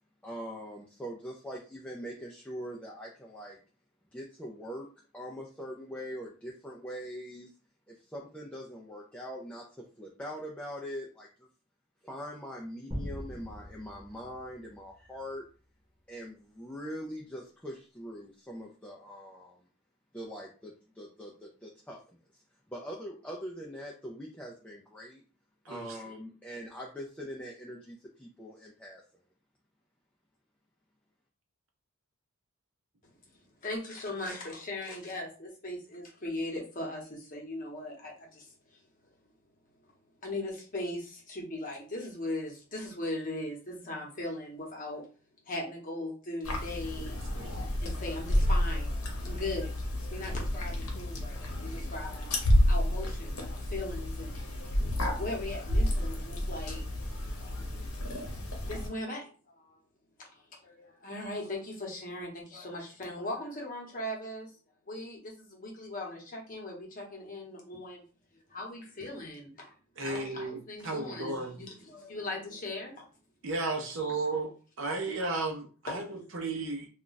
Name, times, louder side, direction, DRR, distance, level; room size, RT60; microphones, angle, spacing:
voice 1, 0.2-3.6 4.1-7.5 7.9-11.5 12.0-15.4 16.1-19.7 20.1-22.4 22.7-25.2 25.7-29.0, equal, 5° left, -2 dB, 0.3 m, -42 dB
sound 1, 12.9-15.4, equal, 20° right, 0.9 m, -42 dB
voice 2, 25.6-26.0 47.0-47.5 70.0-71.6 73.4-74.5 74.8-76.9, right 3 dB, 60° right, 2 dB, 0.7 m, -34 dB
voice 3, 33.6-38.8 40.2-45.1 45.5-47.2 47.8-48.9 49.2-49.7 50.1-54.5 55.1-56.8 57.4-57.7 58.6-59.3 59.6-59.8 60.2-64.5 64.9-68.0 68.5-73.1 74.0-74.1 75.9-76.0, left 1 dB, 40° left, -1 dB, 0.9 m, -39 dB
sound 2, 46.4-58.9, left 1 dB, 75° left, 0.8 m, -30 dB
2.4 x 2.2 x 3.9 m, 0.38 s
head